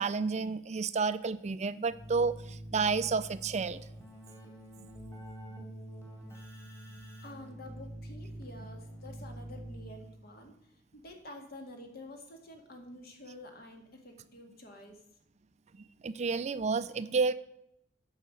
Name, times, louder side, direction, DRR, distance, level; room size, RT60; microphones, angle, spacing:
voice 1, 0.0-3.8 16.0-17.3, right 4 dB, 40° right, 14 dB, 0.4 m, -30 dB
Keyboard (musical), 1.9-10.3, right 1 dB, 15° left, 2.4 m, -46 dB
voice 2, 7.2-15.0, left 1 dB, 55° left, 3 dB, 2.0 m, -49 dB
9.1 x 5.7 x 7.8 m, 0.78 s
head